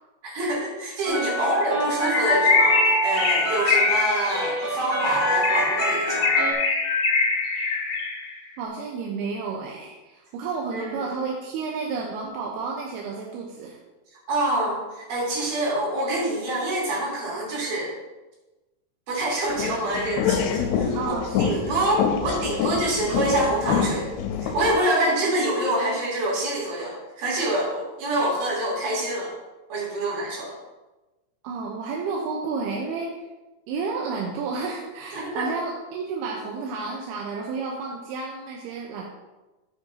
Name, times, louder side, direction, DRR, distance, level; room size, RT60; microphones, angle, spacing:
voice 1, 0.2-6.4 10.7-11.1 14.3-17.9 19.1-24.1 24.4-29.3 29.7-30.6 35.1-35.4, right 1 dB, 70° right, -5 dB, 4.6 m, -26 dB
sound 1, 1.0-6.5, right 2 dB, 30° right, 2.7 m, -27 dB
Bird, 2.0-8.3, left 4 dB, 60° left, 3.0 m, -23 dB
voice 2, 8.6-13.8 21.0-21.8 31.4-33.1 33.7-39.1, right 4 dB, 85° right, -2 dB, 2.9 m, -31 dB
sound 2, 19.5-24.8, left 7 dB, 85° left, 2.7 m, -26 dB
13.5 x 7.7 x 2.8 m, 1.1 s
omnidirectional pair, 4.5 m